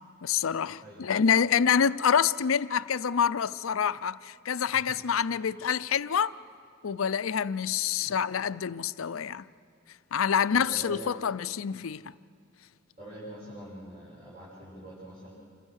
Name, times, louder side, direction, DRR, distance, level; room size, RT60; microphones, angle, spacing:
voice 1, 0.2-6.3 6.8-9.4 10.1-12.1, left 7 dB, 90° left, 0.5 m, -27 dB
voice 2, 0.8-1.2 4.9-5.0 8.0-8.2 10.5-11.4 13.0-15.3, right 1 dB, 40° right, 6.4 m, -44 dB
28.0 x 25.0 x 6.5 m
head